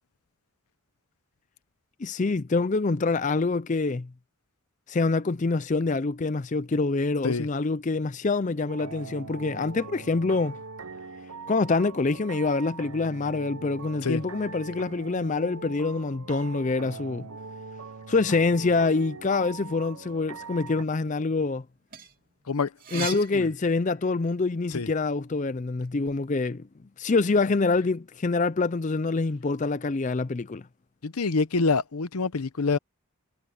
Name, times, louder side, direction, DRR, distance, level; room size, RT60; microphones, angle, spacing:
voice 1, 2.0-4.1 4.9-10.6 11.5-17.3 18.1-21.6 22.9-26.7 27.0-30.6, left 3 dB, 35° left, 0.4 m, -26 dB
sound 1, 8.7-20.8, right 4 dB, 75° right, 0.9 m, -41 dB
sound 2, 21.6-24.3 24.8-26.2, right 9 dB, 40° right, 3.1 m, -41 dB
voice 2, 22.5-23.5 24.7-24.9 31.0-32.8, left 4 dB, 80° left, 0.8 m, -27 dB
head